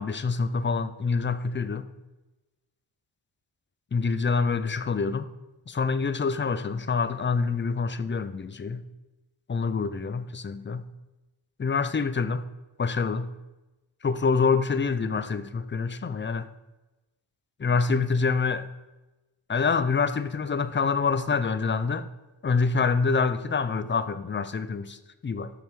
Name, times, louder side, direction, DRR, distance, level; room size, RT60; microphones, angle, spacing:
voice 1, 0.0-1.9 3.9-5.3 5.7-8.8 9.5-10.8 11.6-12.4 12.8-13.3 14.0-16.5 17.6-18.7 19.5-22.1 22.4-25.0 25.2-25.5, left 4 dB, 25° left, 0.4 m, -26 dB
13.0 x 5.4 x 4.7 m
wide cardioid pair, 155°, 45 cm